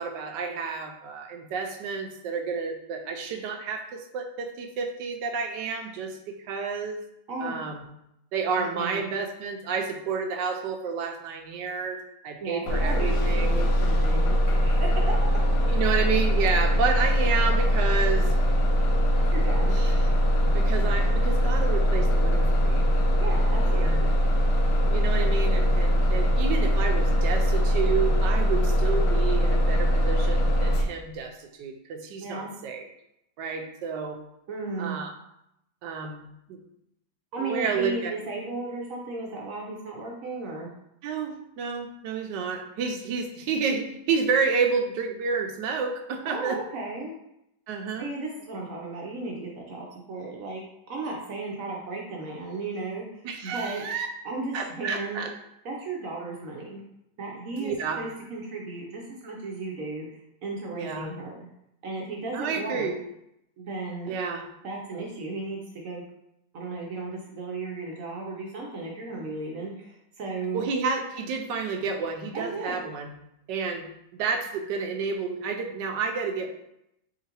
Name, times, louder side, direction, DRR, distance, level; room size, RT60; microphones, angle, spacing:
voice 1, 0.0-7.0 7.4-7.8 8.3-13.5 15.7-18.4 19.7-20.0 20.5-22.9 23.6-24.1 24.9-32.9 33.4-34.2 34.8-35.1 35.8-36.6 37.4-38.1 41.0-46.6 47.7-48.1 53.2-54.1 54.5-55.3 57.6-58.0 60.8-61.1 62.3-63.0 64.1-64.4 70.5-73.1 73.5-73.8 74.1-76.5, right 5 dB, 90° right, 4 dB, 1.3 m, -30 dB
voice 2, 8.5-9.0 12.4-15.6 19.3-19.8 23.2-24.1 32.2-32.5 34.5-35.0 37.3-40.7 46.2-47.2 48.0-53.8 54.2-55.3 55.6-56.8 57.2-61.4 61.8-63.0 63.6-64.1 64.6-66.0 66.5-70.7 72.3-72.8, right 3 dB, 60° right, -1 dB, 0.9 m, -35 dB
Bus, 12.7-30.8, equal, 80° left, 1.2 m, -22 dB
4.4 x 3.8 x 2.9 m, 0.81 s
omnidirectional pair, 1.8 m